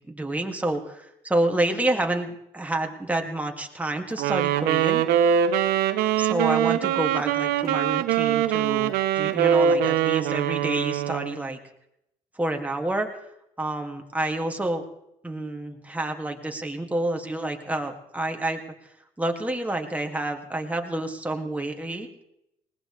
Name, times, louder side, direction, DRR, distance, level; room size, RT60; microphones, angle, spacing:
voice 1, 0.0-5.0 6.2-11.6 12.3-13.1 13.6-14.8 15.2-18.6 19.2-22.1, right 1 dB, 10° right, 3 dB, 2.3 m, -28 dB
Wind instrument woodwind instrument, 4.2-11.4, right 9 dB, 85° right, 1.1 m, -23 dB
20.0 x 19.0 x 3.4 m, 0.80 s
supercardioid pair, 80°, 15 cm